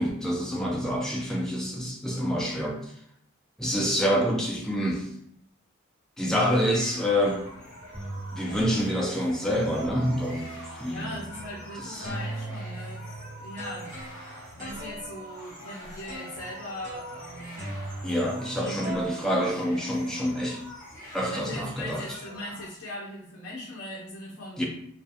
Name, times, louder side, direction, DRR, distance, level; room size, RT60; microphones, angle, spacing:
voice 1, 0.0-2.9 3.6-5.1 6.2-7.4 8.3-11.2 11.8-12.1 18.0-20.6 21.1-22.0 24.6-24.7, equal, 5° left, -1 dB, 0.3 m, -27 dB
sound 1, 6.3-22.7, equal, 40° left, 1.1 m, -45 dB
sound 2, 7.5-7.6 7.9-9.0 9.4-11.7 12.0-18.6 18.8-20.2, right 2 dB, 35° right, 0.8 m, -40 dB
voice 2, 10.9-14.0 14.6-17.7 18.6-19.0 21.2-24.6, left 1 dB, 60° left, -4 dB, 0.5 m, -39 dB
2.3 x 2.2 x 2.7 m, 0.69 s
head